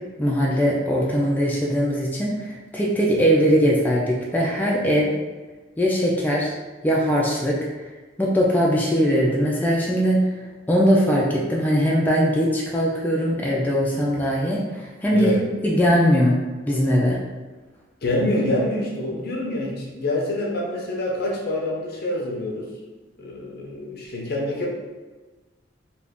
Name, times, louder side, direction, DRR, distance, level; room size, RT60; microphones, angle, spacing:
voice 1, 0.2-2.3 2.7-5.1 5.8-6.5 6.8-7.6 8.2-10.2 10.7-15.3 15.6-16.4 16.7-17.2, equal, 10° left, -4 dB, 0.3 m, -20 dB
voice 2, 15.1-15.5 18.0-22.7 23.2-24.7, left 1 dB, 55° left, -2 dB, 0.7 m, -26 dB
2.6 x 2.3 x 3.4 m, 1.3 s
head